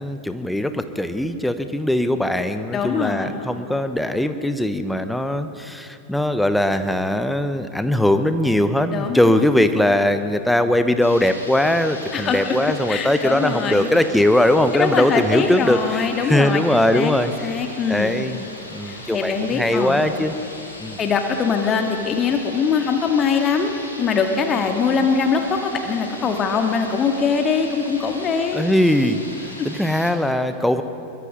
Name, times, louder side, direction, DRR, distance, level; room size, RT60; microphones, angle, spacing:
voice 1, 0.0-17.3 17.9-18.4 18.7-20.3 20.8-21.0 28.5-29.2 29.6-30.8, left 1 dB, 5° left, 9 dB, 1.1 m, -20 dB
voice 2, 2.7-3.4 8.9-9.3 9.8-9.9 12.1-13.9 14.7-18.1 18.8-20.0 21.0-23.7 24.0-28.6, left 5 dB, 25° left, 4 dB, 2.1 m, -22 dB
sound 1, 11.0-30.1, left 1 dB, 80° left, 3.6 m, -38 dB
24.5 x 22.0 x 5.3 m, 2.7 s
figure-of-eight pair, 90°, 0 cm